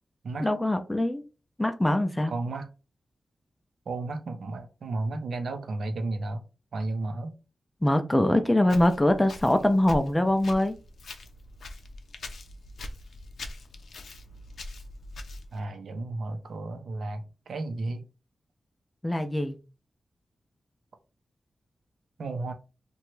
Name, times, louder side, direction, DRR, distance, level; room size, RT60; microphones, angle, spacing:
voice 1, 0.4-1.2 1.6-2.3 7.8-10.8 19.0-19.6, left 1 dB, 10° left, 0.3 m, -23 dB
voice 2, 2.3-2.7 3.9-6.4 6.7-7.4 8.7-8.8 15.5-18.1 22.2-22.5, right 2 dB, 80° right, 0.5 m, -33 dB
Walk footsteps, 8.6-15.6, left 2 dB, 80° left, 0.5 m, -42 dB
2.9 x 2.2 x 3.0 m
wide cardioid pair, 110°, 0 cm